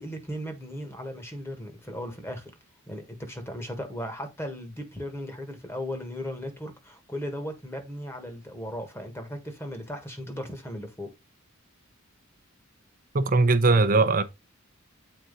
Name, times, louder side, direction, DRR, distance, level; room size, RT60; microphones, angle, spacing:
voice 1, 0.0-2.5 2.9-11.1, equal, 10° left, 1.5 m, -37 dB
voice 2, 13.1-14.2, right 3 dB, 40° right, 0.7 m, -20 dB
7.9 x 4.3 x 4.0 m
head